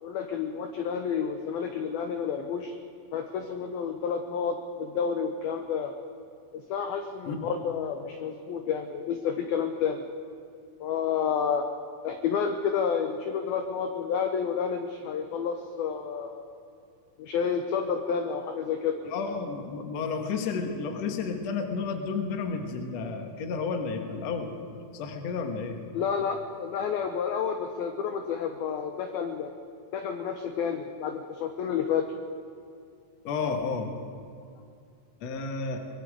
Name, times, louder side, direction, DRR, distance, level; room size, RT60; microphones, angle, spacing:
voice 1, 0.0-2.7 3.1-5.9 6.5-10.0 10.8-11.7 12.0-16.5 17.2-19.0 25.9-29.5 29.9-32.1, left 7 dB, 80° left, 5 dB, 2.2 m, -30 dB
voice 2, 19.0-24.6 24.9-25.8 33.2-33.9 35.2-35.8, left 4 dB, 60° left, 4 dB, 1.7 m, -31 dB
23.5 x 22.0 x 5.0 m, 2.3 s
omnidirectional pair, 5.6 m